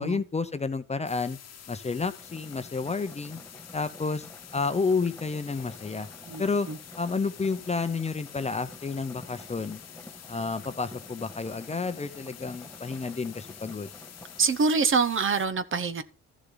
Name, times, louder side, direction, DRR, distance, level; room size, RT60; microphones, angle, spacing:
voice 1, 0.0-1.4 1.7-3.4 3.7-4.3 4.5-6.1 6.4-6.7 7.0-9.8 10.3-13.9, left 4 dB, 20° left, 0.8 m, -30 dB
sound 1, 1.1-15.5, left 9 dB, 60° left, 1.2 m, -48 dB
sound 2, 2.2-14.6, left 1 dB, 5° left, 1.9 m, -49 dB
voice 2, 6.3-6.8 14.4-16.0, right 5 dB, 40° right, 1.0 m, -25 dB
13.5 x 6.7 x 4.0 m
cardioid pair, 90°, 30 cm